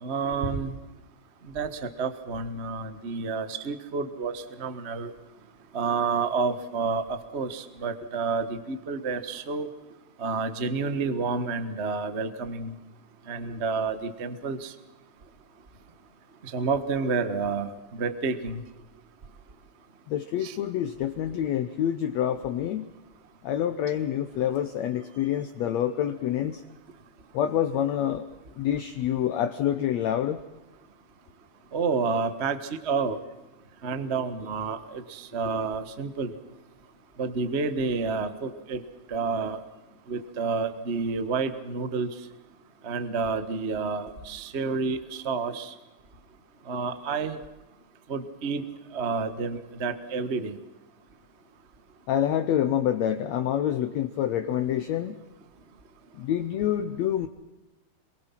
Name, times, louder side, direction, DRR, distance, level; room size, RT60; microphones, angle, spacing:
voice 1, 0.0-0.7 1.5-1.7 2.0-5.1 5.7-7.0 7.3-9.7 10.2-12.7 13.3-14.7 16.5-17.7 18.0-18.6 20.4-20.6 31.7-32.6 32.8-33.2 33.8-36.3 37.2-38.8 39.1-39.6 40.1-42.1 42.8-45.7 46.7-47.4 48.1-48.6 48.9-50.6, right 4 dB, 75° right, 10 dB, 0.6 m, -29 dB
voice 2, 20.1-22.9 23.4-26.6 27.3-28.3 28.6-30.4 52.1-55.1 56.2-57.3, left 10 dB, 65° left, 9 dB, 1.9 m, -27 dB
27.5 x 22.5 x 5.9 m, 1.1 s
omnidirectional pair, 3.9 m